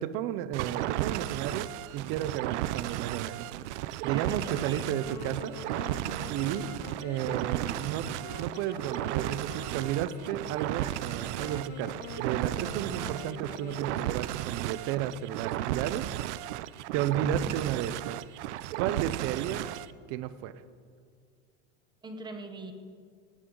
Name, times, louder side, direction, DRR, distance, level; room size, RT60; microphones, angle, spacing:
voice 1, 0.0-3.5 3.8-5.6 6.3-6.7 7.0-8.1 8.4-16.1 16.9-18.2 18.8-19.6 20.1-20.5, right 11 dB, 40° right, 14 dB, 0.7 m, -33 dB
sound 1, 0.5-19.9, right 14 dB, 75° right, 0.6 m, -34 dB
voice 2, 4.1-4.8 6.7-6.9 12.9-13.1 17.4-17.6 22.0-22.7, right 2 dB, 10° right, 6 dB, 1.0 m, -42 dB
Wind instrument woodwind instrument, 4.4-13.9, left 8 dB, 70° left, 1.2 m, -46 dB
18.5 x 14.5 x 3.9 m, 2.1 s
supercardioid pair, 155°, 35 cm